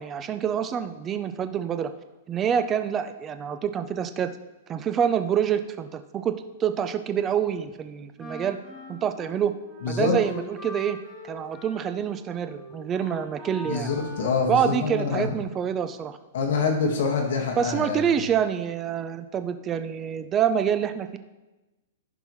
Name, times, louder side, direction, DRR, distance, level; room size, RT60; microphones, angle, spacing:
voice 1, 0.0-1.9 2.3-4.3 4.7-8.6 8.9-9.5 9.9-11.0 11.2-13.9 14.5-16.2 17.6-21.2, right 8 dB, 20° right, 9 dB, 0.6 m, -26 dB
Wind instrument woodwind instrument, 8.2-15.4, left 2 dB, ahead, 2.1 m, -42 dB
voice 2, 9.8-10.2 13.7-15.3 16.3-18.0, left 5 dB, 70° left, 1 dB, 1.6 m, -25 dB
14.5 x 5.4 x 3.2 m, 1.1 s
hypercardioid pair, 150°, 0 cm